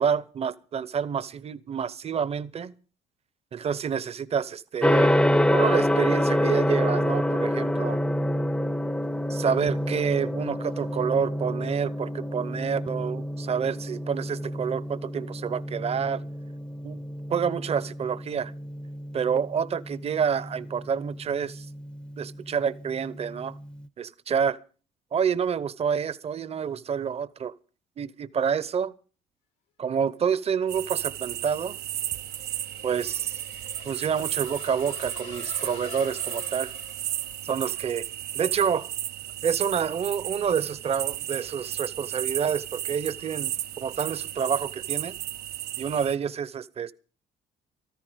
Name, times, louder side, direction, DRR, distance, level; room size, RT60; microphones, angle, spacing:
voice 1, 0.0-2.7 3.5-5.1 5.5-8.0 9.3-16.2 16.8-17.0 17.3-18.5 19.1-21.7 22.2-23.5 24.0-24.6 25.1-27.5 28.0-28.9 29.8-31.8 32.8-33.4 33.8-36.7 37.4-38.0 38.3-38.9 39.4-45.2 45.8-46.9, right 7 dB, 35° right, 0.8 m, -28 dB
Gong, 4.8-23.8, equal, 5° left, 0.7 m, -28 dB
sound 1, 30.7-37.8, left 8 dB, 90° left, 2.4 m, -47 dB
sound 2, 30.7-46.2, right 13 dB, 70° right, 0.6 m, -34 dB
14.0 x 13.5 x 5.1 m
cardioid pair, 110°, 17 cm